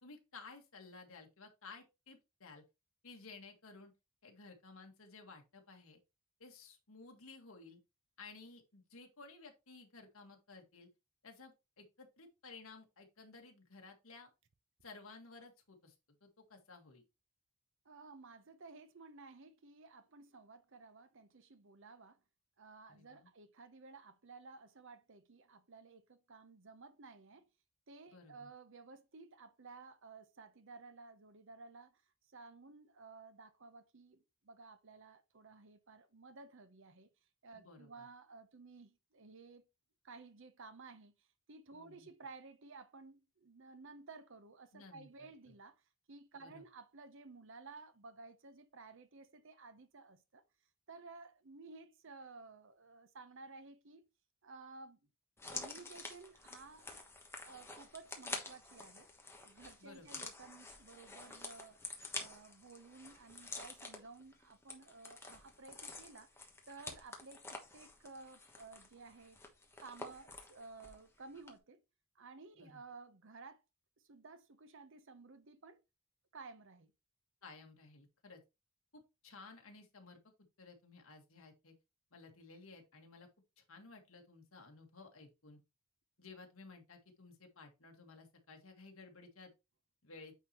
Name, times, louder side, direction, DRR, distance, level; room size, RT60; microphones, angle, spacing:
voice 1, 0.0-2.6 3.0-3.9 4.2-6.0 6.4-7.8 8.2-10.9 11.2-14.3 14.8-15.9 16.2-17.0 22.9-23.3 28.1-28.5 37.5-38.1 41.7-42.1 44.7-45.3 46.4-46.6 59.8-60.2 72.6-72.8 77.4-78.4 78.9-80.2 80.6-81.7 82.1-83.3 83.6-85.6 86.2-89.5 90.0-90.3, left 3 dB, 70° left, 1.7 m, -56 dB
voice 2, 17.8-22.2 22.6-27.5 27.9-32.0 32.3-37.1 37.4-39.6 40.0-50.4 50.9-54.0 54.4-55.0 55.5-56.9 57.4-59.1 59.4-61.8 62.1-66.3 66.7-69.4 69.8-71.8 72.1-73.6 74.0-75.8 76.3-76.9, right 4 dB, 60° right, 0.9 m, -55 dB
sound 1, 55.4-71.1 71.3-71.5, left 3 dB, 10° left, 1.2 m, -49 dB
9.1 x 4.1 x 3.0 m
head